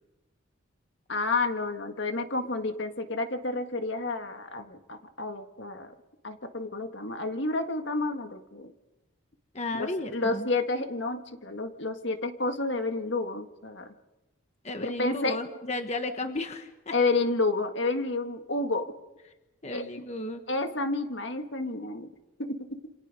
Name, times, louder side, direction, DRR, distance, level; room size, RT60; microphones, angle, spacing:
voice 1, 1.1-6.0 6.2-8.7 9.7-13.9 14.8-15.4 16.9-18.9 19.7-19.9 20.5-22.1 22.4-22.8, left 3 dB, 60° left, 7 dB, 1.8 m, -30 dB
voice 2, 9.5-10.5 14.6-17.0 19.6-20.4, left 2 dB, 30° left, 6 dB, 1.4 m, -34 dB
28.0 x 27.0 x 5.4 m, 1.0 s
head